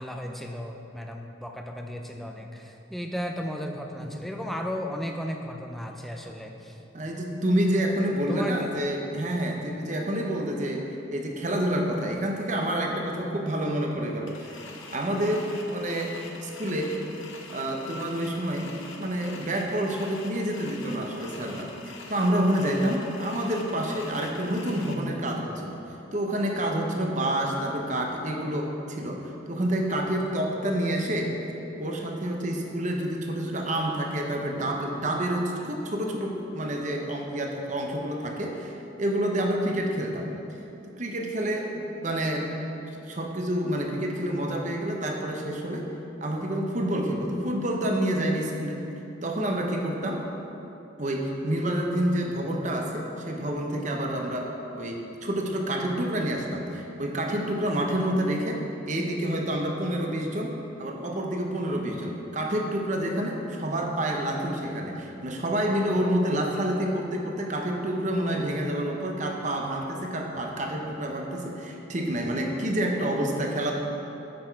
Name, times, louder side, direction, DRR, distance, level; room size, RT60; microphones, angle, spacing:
voice 1, 0.0-6.8 8.3-8.7, equal, ahead, 2 dB, 0.4 m, -35 dB
voice 2, 6.9-14.6 14.9-16.9 17.5-18.7 19.0-25.8 26.1-31.3 31.8-40.3 40.9-42.5 43.1-45.9 46.2-48.8 49.2-50.2 51.0-73.7, right 1 dB, 40° right, 1 dB, 0.8 m, -28 dB
sound 1, 14.3-24.9, left 3 dB, 80° left, 0.8 m, -45 dB
8.6 x 5.9 x 4.6 m, 2.9 s
head